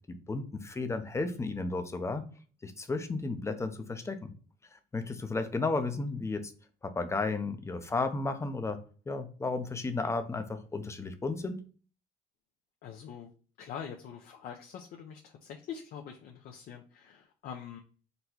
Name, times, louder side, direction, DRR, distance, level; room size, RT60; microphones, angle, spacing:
voice 1, 0.1-2.2 2.6-4.3 4.9-6.5 6.8-8.8 9.1-11.6, left 3 dB, 15° left, 8 dB, 0.5 m, -33 dB
voice 2, 12.8-13.3 13.6-17.8, left 8 dB, 60° left, 1 dB, 0.5 m, -44 dB
4.0 x 2.2 x 4.4 m, 0.39 s
cardioid pair, 110°, 17 cm